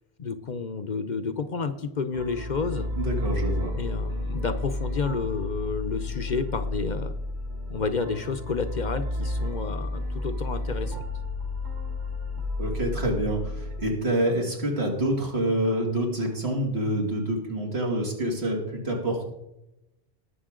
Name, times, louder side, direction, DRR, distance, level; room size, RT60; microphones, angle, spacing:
voice 1, 0.2-2.9 3.8-7.1 7.7-11.0, left 4 dB, 50° left, 10 dB, 0.8 m, -30 dB
sound 1, 2.1-13.9, left 2 dB, 45° right, 1.6 m, -31 dB
voice 2, 2.9-3.7 12.6-19.3, right 1 dB, 75° right, 0 dB, 2.9 m, -27 dB
19.0 x 6.8 x 3.8 m, 0.92 s
omnidirectional pair, 1.1 m